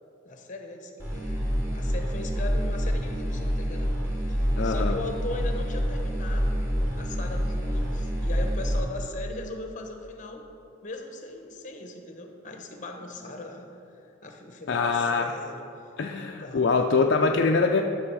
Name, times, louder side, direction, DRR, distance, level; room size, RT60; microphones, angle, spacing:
voice 1, 0.2-4.0 4.3-6.5 6.9-10.5 10.8-15.6 16.1-16.7, left 2 dB, 40° left, 4 dB, 0.9 m, -39 dB
sound 1, 1.0-8.8, equal, 10° right, 1.9 m, -27 dB
voice 2, 4.6-5.0 14.7-15.3 16.0-17.8, left 4 dB, 55° left, 2 dB, 0.4 m, -23 dB
12.0 x 6.1 x 4.7 m, 2.9 s
head